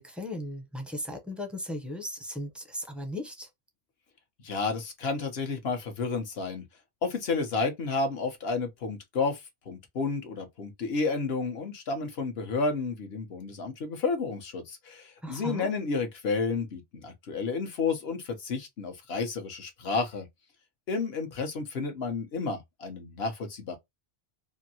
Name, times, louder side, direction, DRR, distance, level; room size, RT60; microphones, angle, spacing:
voice 1, 0.0-3.5 15.2-15.7, left 1 dB, ahead, 0.4 m, -37 dB
voice 2, 4.4-6.6 7.0-9.4 9.7-20.3 20.9-23.8, left 4 dB, 65° left, 1.1 m, -31 dB
2.8 x 2.6 x 2.7 m
omnidirectional pair, 1.1 m